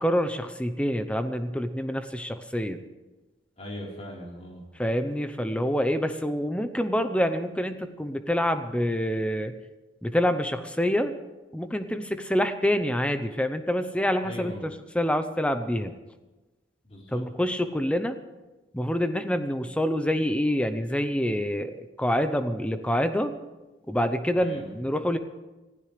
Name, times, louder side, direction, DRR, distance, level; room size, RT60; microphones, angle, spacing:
voice 1, 0.0-2.8 4.8-9.5 10.0-11.1 11.5-15.9 17.1-18.2 18.7-23.3 23.9-25.2, equal, 5° left, 9 dB, 0.8 m, -26 dB
voice 2, 3.6-4.6 14.2-14.6 16.9-17.2 24.3-24.7, left 1 dB, 35° left, -3 dB, 4.2 m, -39 dB
26.0 x 15.5 x 3.4 m, 1.1 s
head